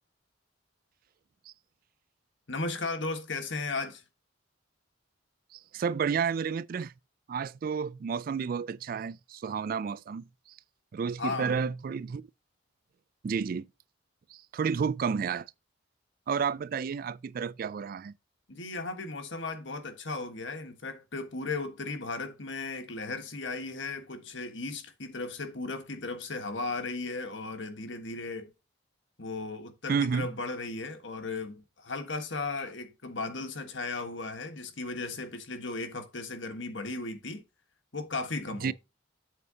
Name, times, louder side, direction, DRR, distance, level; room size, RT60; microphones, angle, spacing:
voice 1, 2.5-4.0 11.2-11.6 18.5-28.5 29.2-37.4 37.9-38.7, left 3 dB, 65° left, 1.5 m, -36 dB
voice 2, 5.5-6.9 7.3-10.3 10.9-12.3 13.2-13.7 14.3-15.5 16.3-18.1 29.9-30.3 38.6-38.7, right 6 dB, 45° right, 0.3 m, -31 dB
7.9 x 7.6 x 2.8 m
head